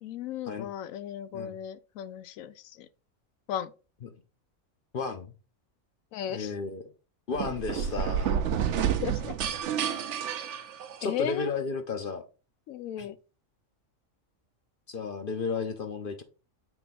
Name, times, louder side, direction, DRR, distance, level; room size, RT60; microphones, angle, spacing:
voice 1, 0.0-2.9 3.5-3.7 6.1-6.5 9.0-9.3 11.0-11.5 12.7-13.2, left 10 dB, 80° left, 1.0 m, -35 dB
voice 2, 4.9-5.3 6.3-6.8 7.3-8.4 11.0-12.2 13.0-13.1 14.9-16.2, left 4 dB, 50° left, 0.8 m, -33 dB
sound 1, 7.3-11.3, right 8 dB, 65° right, 0.9 m, -30 dB
6.9 x 3.4 x 4.0 m
omnidirectional pair, 1.4 m